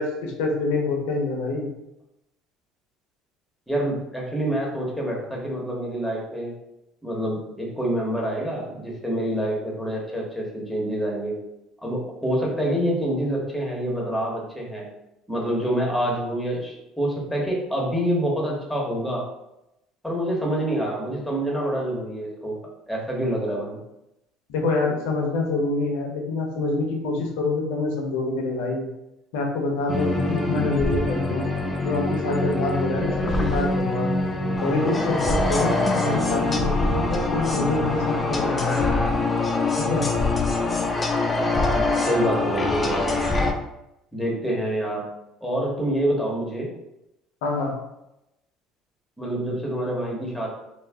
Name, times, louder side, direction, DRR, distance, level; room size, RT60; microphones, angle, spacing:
voice 1, 0.0-1.7 24.5-28.9 29.3-31.4 31.8-34.1 34.6-38.9 39.8-40.1 47.4-47.7, left 3 dB, 80° left, 1 dB, 0.7 m, -26 dB
voice 2, 3.7-6.5 7.0-11.3 11.8-14.8 15.3-19.2 20.0-22.6 22.9-23.8 41.7-43.2 44.1-45.1 45.4-46.7 49.2-50.5, right 1 dB, 5° left, -3 dB, 1.0 m, -26 dB
sound 1, 29.9-43.5, left 2 dB, 25° left, 0.4 m, -24 dB
2.4 x 2.1 x 3.3 m, 0.88 s
supercardioid pair, 90°, 0 cm